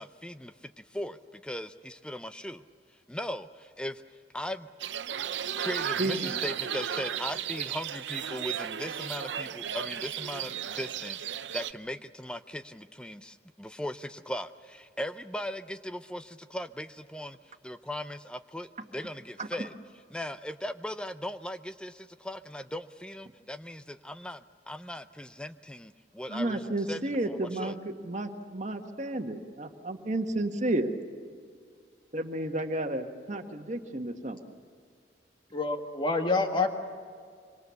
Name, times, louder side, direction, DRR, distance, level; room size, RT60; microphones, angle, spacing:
voice 1, 0.0-2.6 3.1-4.0 4.3-4.7 5.6-19.7 20.1-27.8, left 1 dB, 5° left, 11 dB, 0.5 m, -38 dB
sound 1, 4.8-11.7, right 9 dB, 85° right, 0.6 m, -34 dB
voice 2, 6.0-6.4 19.4-19.7 26.3-30.9 32.1-34.4, right 1 dB, 40° right, 5 dB, 1.6 m, -32 dB
voice 3, 35.5-36.7, left 3 dB, 25° left, 4 dB, 1.8 m, -27 dB
25.5 x 25.0 x 7.1 m, 2.1 s
head